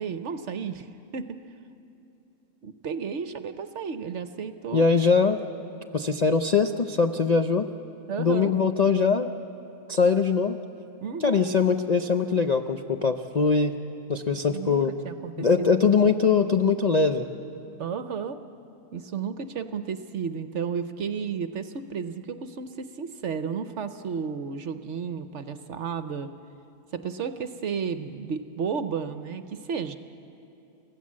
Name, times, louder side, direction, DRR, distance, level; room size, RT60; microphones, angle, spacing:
voice 1, 0.0-1.4 2.6-4.9 8.1-8.5 11.0-11.4 14.5-16.1 17.8-18.4 18.9-26.3 26.9-30.0, right 6 dB, 60° right, 10 dB, 0.9 m, -33 dB
voice 2, 4.7-5.4 5.9-7.7 8.2-9.3 9.9-10.6 11.2-13.7 14.1-14.9 15.4-17.3, left 5 dB, 60° left, 6 dB, 0.4 m, -22 dB
30.0 x 16.0 x 7.5 m, 2.8 s
omnidirectional pair, 1.6 m